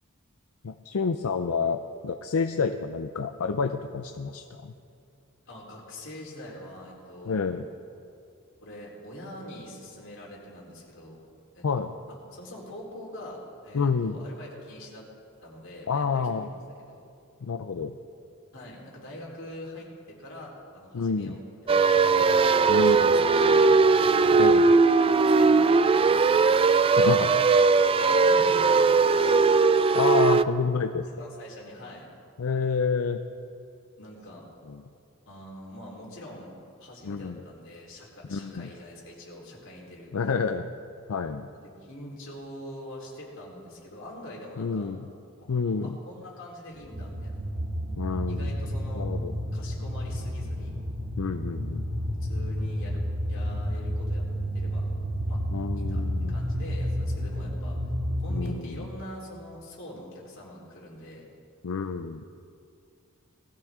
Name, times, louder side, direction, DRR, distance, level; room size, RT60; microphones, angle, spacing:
voice 1, 0.6-4.7 7.3-7.7 11.6-11.9 13.7-14.2 15.9-16.5 17.4-18.0 20.9-21.4 22.7-23.2 24.3-24.8 27.0-27.5 29.9-31.1 32.4-33.2 34.6-34.8 37.0-37.4 38.3-38.7 40.1-40.7 41.1-41.5 44.6-45.1 45.5-46.0 48.0-48.6 49.0-49.3 51.2-51.9 55.5-56.4 58.3-58.9 61.6-62.2, left 5 dB, 85° left, 7 dB, 0.5 m, -29 dB
voice 2, 5.5-7.4 8.6-11.2 11.5-11.7 12.3-15.0 15.4-16.6 16.9-17.0 18.5-24.3 25.3-26.5 27.7-29.5 31.2-32.1 34.0-34.5 35.3-40.5 41.5-44.9 45.4-47.4 48.3-49.1 49.5-50.7 52.2-53.0 53.3-54.2 54.5-54.9 55.3-55.4 55.8-57.8 58.2-61.3, left 1 dB, 65° left, -4 dB, 3.9 m, -44 dB
sound 1, 21.7-30.4, right 4 dB, 25° right, 0.3 m, -19 dB
sound 2, 46.8-58.5, equal, 50° right, 1.7 m, -30 dB
20.0 x 14.5 x 3.7 m, 2.4 s
head